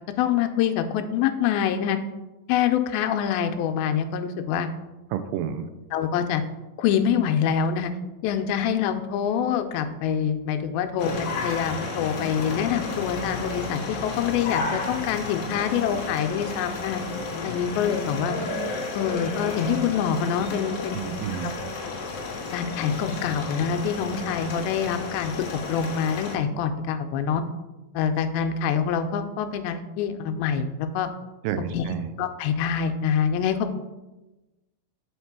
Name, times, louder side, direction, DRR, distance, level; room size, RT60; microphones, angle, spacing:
voice 1, 0.2-2.0 2.5-4.7 5.9-6.4 6.8-7.9 8.2-17.0 17.4-18.4 18.9-21.1 21.4-21.5 22.5-25.3 25.7-27.4 27.9-31.1 31.7-31.8 32.2-33.8, left 8 dB, 90° left, 7 dB, 2.4 m, -25 dB
voice 2, 5.1-5.7 20.9-21.6 31.4-32.1, right 9 dB, 80° right, 10 dB, 2.1 m, -30 dB
sound 1, 11.0-26.4, left 3 dB, 70° left, 1.5 m, -32 dB
7.2 x 4.4 x 4.6 m, 1.1 s
omnidirectional pair, 4.2 m